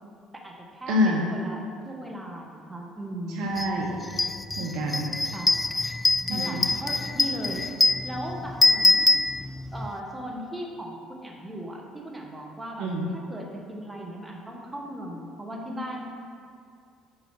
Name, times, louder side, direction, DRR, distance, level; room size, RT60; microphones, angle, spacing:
voice 1, 0.3-3.5 5.3-5.5 6.3-7.7 8.0-9.1 9.7-16.1, right 1 dB, 15° right, 0 dB, 1.4 m, -37 dB
voice 2, 0.9-1.2 3.4-4.0 4.6-5.1 6.3-6.6 12.8-13.1, left 1 dB, 65° right, 0 dB, 0.9 m, -26 dB
sound 1, 3.6-3.7 4.0-9.9, left 2 dB, 20° left, 0.3 m, -24 dB
6.4 x 4.8 x 5.9 m, 2.3 s
hypercardioid pair, 55°, 0 cm